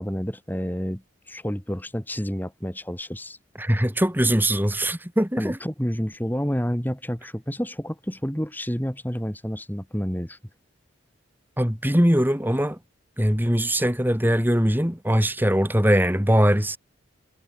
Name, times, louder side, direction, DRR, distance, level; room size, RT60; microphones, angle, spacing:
voice 1, 0.0-3.4 5.4-10.4, equal, 10° left, 3.7 m, -29 dB
voice 2, 3.6-5.6 11.6-12.8 13.2-16.8, equal, 10° right, 3.8 m, -21 dB
head